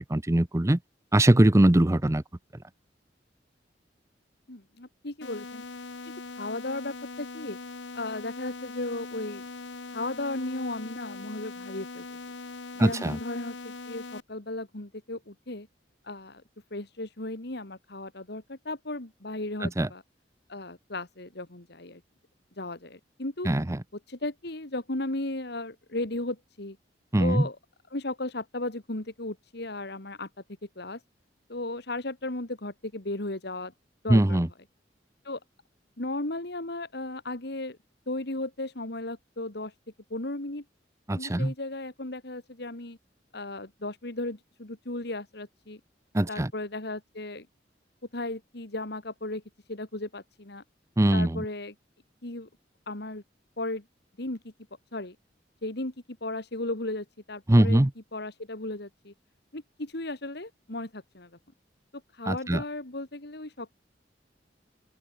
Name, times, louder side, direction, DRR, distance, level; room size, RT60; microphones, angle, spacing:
voice 1, 0.1-0.8 1.1-2.2 12.8-13.2 19.6-19.9 23.4-23.8 27.1-27.5 34.1-34.5 41.1-41.5 46.1-46.5 51.0-51.4 57.5-57.9 62.3-62.6, right 1 dB, 15° right, 0.6 m, -21 dB
voice 2, 4.5-5.6 6.3-7.6 8.0-9.4 9.9-12.0 12.8-15.7 16.0-16.4 16.7-20.0 20.5-22.0 22.6-23.5 24.1-26.8 27.2-27.6 27.9-30.3 30.8-31.0 31.5-33.7 34.0-34.4 35.2-35.4 36.0-37.8 38.1-39.7 40.1-40.6 41.1-43.0 43.3-45.8 46.3-47.5 48.1-49.4 49.7-50.6 51.1-51.7 52.2-52.5 52.9-53.2 53.6-53.8 54.2-54.4 54.9-55.2 55.6-55.9 56.2-57.8 58.1-59.1 59.5-61.3 62.1-63.7, left 2 dB, 60° left, 2.4 m, -35 dB
sound 1, 5.2-14.2, left 3 dB, 80° left, 1.1 m, -41 dB
open air
head